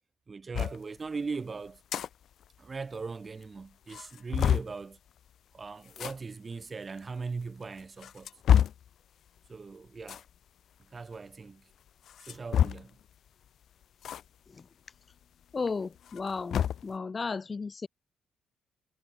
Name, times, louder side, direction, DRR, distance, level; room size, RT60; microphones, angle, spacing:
voice 1, 0.3-1.8 2.6-5.0 5.5-8.3 9.5-10.2 10.9-11.7 12.3-13.0, right 4 dB, 30° right, 3.0 m, -39 dB
sound 1, 0.5-0.8 1.7-2.1 2.4-2.5 2.8-2.9 3.4-3.5 3.9-4.7 5.9-6.1 7.0-7.1 7.8-8.9 10.0-10.3 12.1-13.0 14.0-14.2 14.6-14.7 16.0-16.9, left 9 dB, 65° left, 0.8 m, -27 dB
voice 2, 15.5-17.9, left 4 dB, 30° left, 6.1 m, -34 dB
cardioid pair, 90°, 0 cm